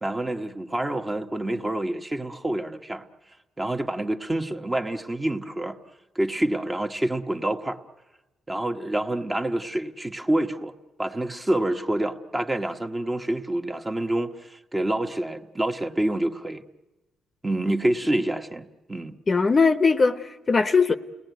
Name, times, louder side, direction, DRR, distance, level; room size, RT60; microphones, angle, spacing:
voice 1, 0.0-3.0 3.6-5.8 6.1-7.8 8.5-10.7 11.0-16.6 17.4-19.2, right 1 dB, 15° right, 1.2 m, -27 dB
voice 2, 19.3-20.9, left 4 dB, 35° left, 0.9 m, -20 dB
29.5 x 18.5 x 9.3 m
cardioid pair, 90°, 0 cm